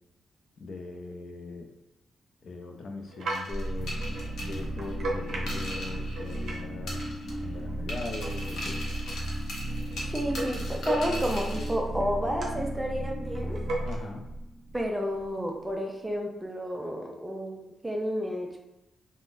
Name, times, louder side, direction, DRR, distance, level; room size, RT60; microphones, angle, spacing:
voice 1, 0.6-1.7 2.4-3.9 4.4-7.0 7.4-8.8 13.8-14.3, left 3 dB, 55° left, 2 dB, 0.4 m, -40 dB
sound 1, 3.1-6.7 7.0-11.5 11.8-12.8 13.2-14.0, right 2 dB, 60° right, 0.7 m, -38 dB
sound 2, 3.3-6.6 6.9-7.5 7.9-11.8, left 1 dB, 85° left, 0.8 m, -40 dB
sound 3, 3.5-15.3, right 1 dB, 25° left, 1.2 m, -35 dB
voice 2, 10.1-13.6 14.7-18.6, equal, 10° right, 1 dB, 0.4 m, -31 dB
3.8 x 2.1 x 2.4 m, 0.96 s
wide cardioid pair, 160°, 0 cm